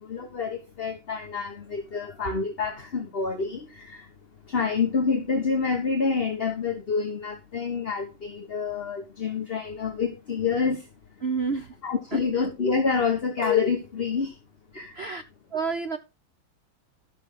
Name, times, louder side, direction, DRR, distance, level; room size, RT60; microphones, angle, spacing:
voice 1, 0.0-4.1 4.4-10.9 11.8-14.4 14.7-15.0, left 5 dB, 35° left, 1.2 m, -27 dB
voice 2, 11.2-11.7 12.1-12.5 14.9-15.2 15.5-16.0, right 5 dB, 65° right, 0.6 m, -29 dB
13.0 x 7.5 x 3.8 m
omnidirectional pair, 2.3 m